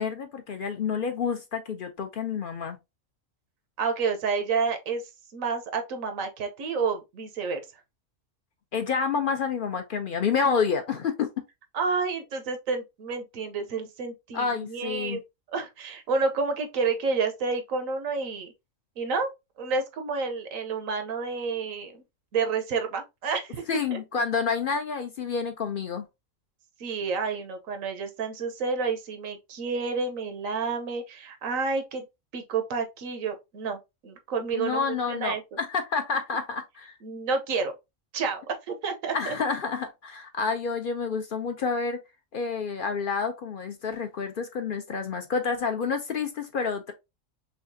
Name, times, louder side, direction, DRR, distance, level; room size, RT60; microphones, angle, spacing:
voice 1, 0.0-2.8 8.7-11.3 14.3-15.2 23.7-26.1 34.5-36.9 39.1-42.0 42.3-46.9, left 5 dB, 60° left, 0.6 m, -29 dB
voice 2, 3.8-5.0 5.3-7.6 11.7-15.2 15.5-18.5 19.0-19.3 19.6-22.0 22.3-24.0 26.8-32.0 32.3-35.4 37.0-37.7 38.1-39.3, right 4 dB, 90° right, 1.3 m, -29 dB
5.6 x 2.4 x 2.6 m
omnidirectional pair, 1.4 m